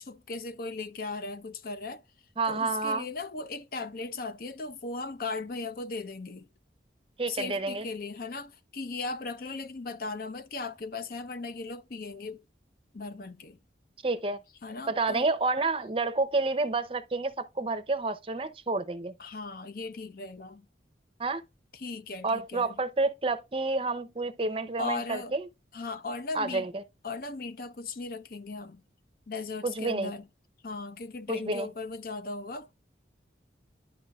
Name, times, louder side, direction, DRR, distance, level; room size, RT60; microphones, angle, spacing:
voice 1, 0.1-2.0 2.5-6.5 7.3-12.4 12.9-13.6 14.6-15.3 19.2-20.7 21.7-22.7 24.8-25.3 25.7-26.7 27.0-28.8 29.3-30.3 30.6-32.7, left 3 dB, 50° left, 0.6 m, -37 dB
voice 2, 2.4-3.0 7.2-7.9 14.0-14.4 14.9-19.1 21.2-21.4 22.2-25.4 26.3-26.8 29.6-30.1 31.3-31.7, right 3 dB, 30° right, 0.6 m, -29 dB
11.5 x 4.6 x 2.3 m
head